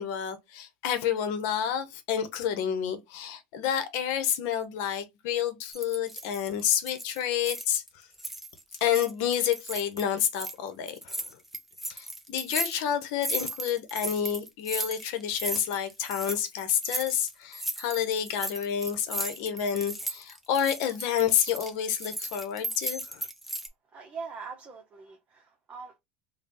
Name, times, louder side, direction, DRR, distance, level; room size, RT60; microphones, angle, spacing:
voice 1, 0.0-7.8 8.8-11.2 11.9-23.3, left 9 dB, 70° left, 0.9 m, -29 dB
sound 1, 5.7-10.5 10.9-23.7, right 1 dB, ahead, 0.7 m, -36 dB
voice 2, 23.8-26.0, right 5 dB, 30° right, 0.9 m, -42 dB
3.6 x 2.3 x 4.1 m
supercardioid pair, 95°, 5 cm